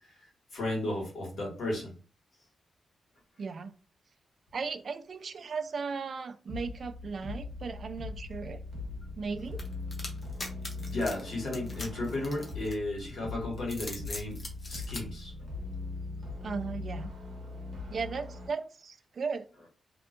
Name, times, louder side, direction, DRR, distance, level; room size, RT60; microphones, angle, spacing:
voice 1, 0.5-1.9 10.8-14.4 14.7-15.3, left 1 dB, 65° left, -2 dB, 1.4 m, -34 dB
voice 2, 3.4-3.7 4.5-8.6 9.2-9.6 16.4-17.1 17.9-19.5, right 5 dB, 50° right, 9 dB, 0.3 m, -36 dB
sound 1, 6.5-18.5, left 3 dB, 90° right, 0.7 m, -40 dB
sound 2, 9.6-13.0 13.6-15.0, left 2 dB, 35° left, 0.7 m, -41 dB
2.6 x 2.3 x 2.4 m, 0.37 s
wide cardioid pair, 150°, 0 cm